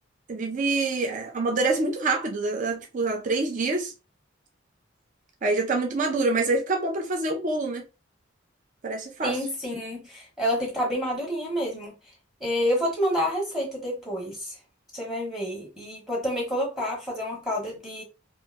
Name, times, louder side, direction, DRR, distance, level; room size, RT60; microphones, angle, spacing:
voice 1, 0.3-3.9 5.4-7.8 8.8-9.4, right 3 dB, 40° right, 0.5 m, -26 dB
voice 2, 9.2-11.9 12.4-14.5 14.9-18.0, equal, ahead, 0.9 m, -28 dB
2.9 x 2.5 x 2.4 m
head